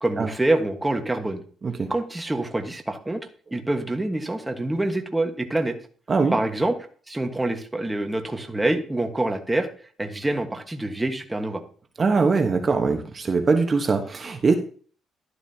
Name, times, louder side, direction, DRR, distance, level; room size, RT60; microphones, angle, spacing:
voice 1, 0.0-1.4 1.9-5.7 6.3-6.8 7.1-9.7 10.0-11.6, right 2 dB, 10° right, 5 dB, 1.4 m, -26 dB
voice 2, 12.0-14.5, right 4 dB, 35° right, 5 dB, 1.2 m, -22 dB
12.0 x 11.0 x 2.9 m, 0.43 s
cardioid pair, 90°, 0 cm